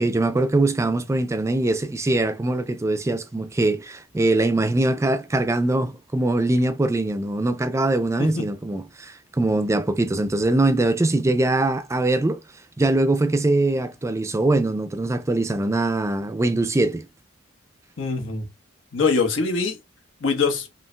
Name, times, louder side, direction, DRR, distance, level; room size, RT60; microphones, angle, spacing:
voice 1, 0.0-12.4 12.8-17.1, right 2 dB, 15° right, 0.4 m, -22 dB
voice 2, 18.0-18.5 18.9-19.8 20.2-20.7, left 4 dB, 90° left, 1.2 m, -23 dB
5.3 x 2.8 x 2.2 m
head